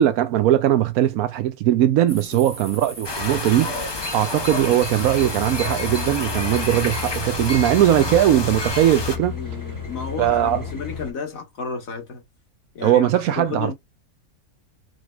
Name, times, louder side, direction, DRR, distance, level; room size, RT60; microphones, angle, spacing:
voice 1, 0.0-9.3 10.2-10.6 12.8-13.7, right 12 dB, 90° right, 1.1 m, -20 dB
sound 1, 2.1-7.6, right 1 dB, 5° right, 1.6 m, -39 dB
sound 2, 3.0-9.2, left 3 dB, 35° left, 0.4 m, -29 dB
sound 3, 5.0-11.1, left 7 dB, 15° left, 1.0 m, -33 dB
voice 2, 9.3-12.2 12.7-13.7, left 5 dB, 75° left, 1.7 m, -32 dB
5.1 x 3.1 x 2.3 m
omnidirectional pair, 1.5 m